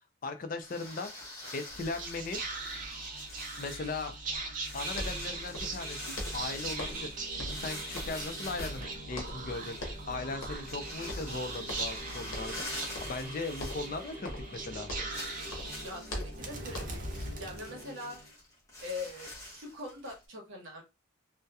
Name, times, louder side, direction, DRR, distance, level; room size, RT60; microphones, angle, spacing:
voice 1, 0.2-1.1 1.5-2.4 3.6-4.1 4.7-12.7 13.0-14.9, left 3 dB, 40° left, 7 dB, 0.4 m, -38 dB
sound 1, 0.6-14.4 14.7-14.8 15.1-20.3, left 2 dB, 15° left, 0.8 m, -46 dB
Whispering, 1.7-18.3, right 2 dB, 40° right, 0.5 m, -40 dB
sound 2, 4.9-5.9 6.2-7.1 7.4-8.3 8.6-9.5 9.8-10.1 10.4-10.8 11.1-12.0 12.3-12.6 12.9-13.3 13.6-15.2 15.5-17.1, left 1 dB, 70° left, 0.8 m, -41 dB
voice 2, 15.8-18.2 18.8-20.8, left 2 dB, 65° right, 0 dB, 0.9 m, -42 dB
2.7 x 2.1 x 2.3 m, 0.26 s
head